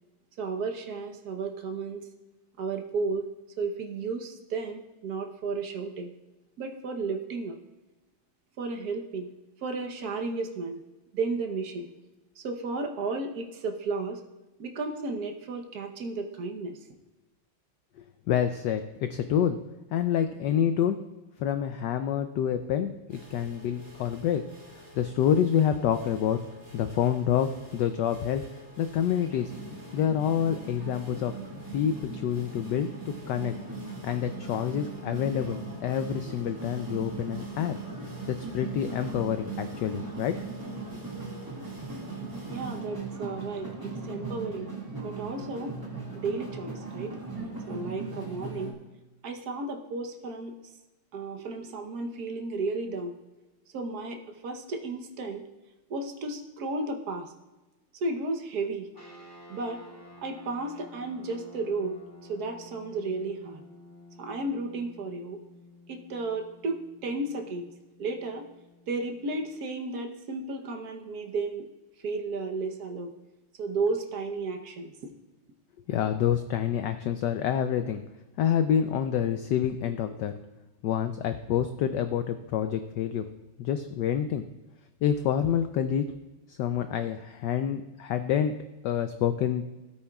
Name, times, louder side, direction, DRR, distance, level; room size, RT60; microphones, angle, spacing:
voice 1, 0.4-2.1 2.6-3.3 3.6-6.1 6.6-7.6 8.6-9.3 9.6-10.8 11.1-11.9 12.4-14.2 14.6-16.8 42.5-44.7 45.0-45.8 46.1-47.1 47.7-48.8 49.2-50.5 51.1-53.2 53.7-55.4 55.9-57.3 57.9-58.9 59.5-59.8 60.2-63.6 64.2-65.4 65.9-67.7 68.0-68.5 68.9-71.7 72.0-73.2 73.6-75.1, right 3 dB, 55° right, 4 dB, 1.2 m, -33 dB
voice 2, 18.3-19.6 19.9-21.0 21.4-24.4 25.0-26.4 26.7-28.4 28.8-29.5 29.9-31.3 31.7-32.9 33.3-33.5 34.0-37.8 38.3-40.4 75.9-78.0 78.4-80.3 80.8-83.2 83.6-84.4 85.0-86.0 86.5-88.5 88.8-89.6, left 9 dB, 80° left, 9 dB, 0.9 m, -27 dB
sound 1, 23.1-42.8, left 1 dB, 25° right, 3.6 m, -49 dB
sound 2, 29.2-48.7, right 3 dB, 10° right, 1.7 m, -39 dB
sound 3, 58.9-69.6, left 1 dB, 10° left, 2.3 m, -52 dB
17.0 x 8.7 x 2.3 m, 1.1 s
omnidirectional pair, 2.4 m